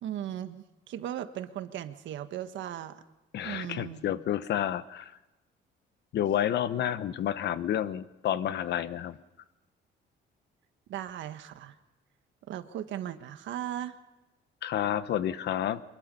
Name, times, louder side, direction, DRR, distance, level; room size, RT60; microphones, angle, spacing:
voice 1, 0.0-3.0 3.4-4.0 10.9-11.7 12.5-13.9, right 11 dB, 75° right, 9 dB, 1.5 m, -37 dB
voice 2, 3.3-5.1 6.1-9.2 14.6-15.8, left 10 dB, 60° left, 14 dB, 1.0 m, -30 dB
25.0 x 21.5 x 5.4 m, 1.0 s
cardioid pair, 160°, 20 cm